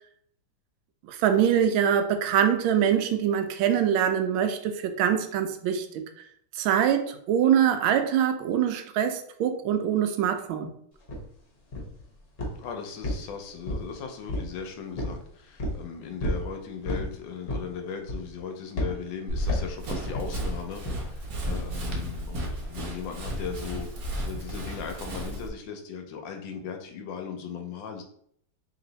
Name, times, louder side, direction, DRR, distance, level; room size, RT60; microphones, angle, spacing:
voice 1, 1.1-6.0 6.6-10.7, right 9 dB, 75° right, 7 dB, 1.3 m, -24 dB
sound 1, 11.1-11.2 11.7-12.0 12.4-12.7 13.0-13.9 14.3-14.6 15.0-15.2 15.6-15.8 16.2-16.5 16.8-17.1 17.5-17.7 18.1-18.4 18.8-19.0 19.5-19.7 20.1-20.3 20.8-21.0, left 1 dB, 40° left, 0.9 m, -31 dB
voice 2, 12.6-23.9 24.2-28.0, left 6 dB, 75° left, 4 dB, 1.2 m, -38 dB
Run, 19.3-25.5, right 1 dB, 60° right, 1.0 m, -33 dB
3.2 x 3.0 x 3.9 m, 0.66 s
omnidirectional pair, 2.4 m